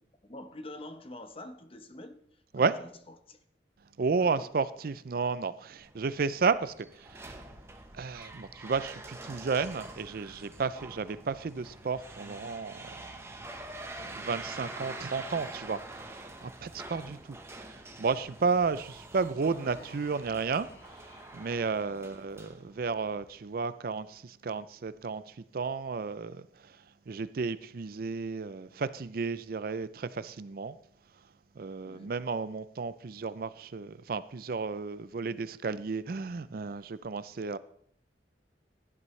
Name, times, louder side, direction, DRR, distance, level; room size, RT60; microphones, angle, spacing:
voice 1, 0.2-3.4 4.2-4.4 17.0-17.2 21.9-22.2 31.8-32.1, left 1 dB, 30° left, 0.9 m, -47 dB
voice 2, 4.0-7.4 7.9-13.3 14.0-17.4 17.7-26.8 27.1-30.8 31.6-37.6, right 4 dB, 55° right, 0.5 m, -33 dB
sound 1, 5.8-23.3, right 2 dB, 15° right, 1.0 m, -46 dB
Human voice, 19.7-21.5, left 2 dB, 65° left, 1.6 m, -55 dB
16.0 x 11.0 x 3.2 m
head